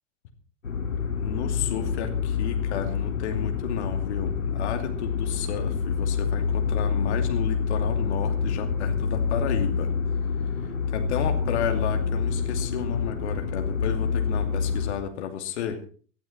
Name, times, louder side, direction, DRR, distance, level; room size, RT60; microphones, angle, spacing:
sound 1, 0.6-14.9, left 6 dB, 80° left, 2.1 m, -27 dB
voice 1, 1.1-9.9 10.9-15.8, left 8 dB, 60° left, 6 dB, 2.8 m, -32 dB
18.5 x 12.0 x 4.4 m, 0.42 s
figure-of-eight pair, 80°, 38 cm